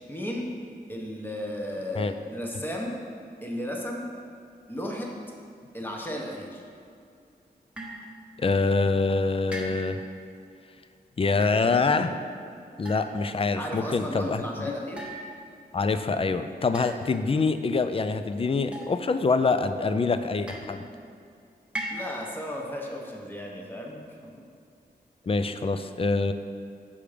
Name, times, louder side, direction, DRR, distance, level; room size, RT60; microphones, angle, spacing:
voice 1, 0.1-0.5 0.9-2.9 3.4-4.1 4.7-5.1 5.7-6.6 13.6-15.0 21.9-24.3, left 1 dB, 10° left, -1 dB, 1.2 m, -34 dB
sound 1, 7.8-8.1 9.5-10.1 11.3-11.6 12.9-13.4 15.0-15.7 16.7-17.3 18.7-19.3 20.5-21.0 21.8-22.4, right 1 dB, 5° right, 1.2 m, -39 dB
voice 2, 8.4-10.0 11.2-12.1 12.8-14.4 15.7-20.8 25.3-26.3, left 4 dB, 35° left, 10 dB, 0.4 m, -25 dB
7.1 x 5.0 x 5.0 m, 2.4 s
wide cardioid pair, 90°, 17 cm